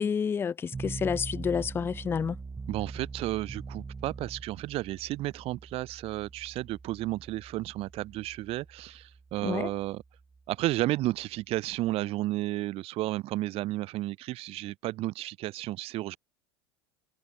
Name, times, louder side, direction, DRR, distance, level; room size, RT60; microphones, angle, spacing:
voice 1, 0.0-2.4 9.4-9.7, left 6 dB, 15° left, 0.4 m, -29 dB
sound 1, 0.7-11.9, right 4 dB, 15° right, 2.4 m, -43 dB
voice 2, 2.7-10.0 10.5-16.2, right 17 dB, 45° right, 1.0 m, -32 dB
figure-of-eight pair, 80°, 14 cm